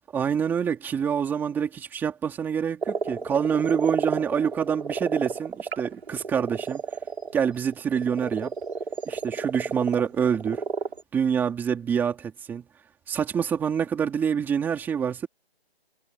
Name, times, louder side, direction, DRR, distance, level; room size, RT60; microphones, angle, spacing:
voice 1, 0.1-6.8 7.3-8.5 9.0-10.6 11.1-12.6 13.1-15.3, right 7 dB, 5° right, 3.1 m, -26 dB
sound 1, 2.8-11.0, right 4 dB, 85° right, 5.5 m, -31 dB
hypercardioid pair, 170°, 31 cm